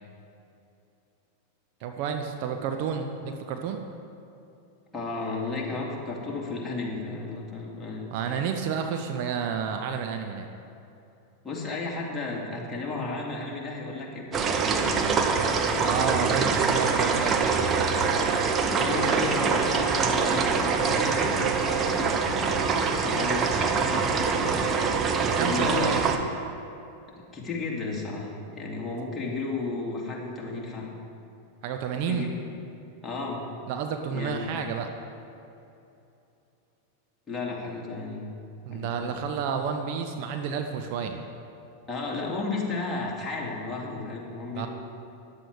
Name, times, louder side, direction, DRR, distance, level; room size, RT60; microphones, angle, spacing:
voice 1, 1.8-3.8 8.1-10.5 15.8-17.8 25.2-26.0 31.6-32.3 33.7-34.9 38.6-41.2 44.5-44.7, right 6 dB, 45° right, 5 dB, 0.8 m, -30 dB
voice 2, 4.9-8.1 11.4-15.2 15.5-16.5 18.7-22.3 22.5-22.6 23.0-26.1 27.1-30.9 32.1-32.3 33.0-33.4 34.1-34.4 37.3-38.3 38.7-39.2 41.9-44.7, left 3 dB, 15° left, -3 dB, 2.7 m, -34 dB
sound 1, 14.3-26.2, right 5 dB, 25° right, 1.0 m, -24 dB
14.0 x 10.5 x 4.9 m, 2.8 s
figure-of-eight pair, 90°, 0 cm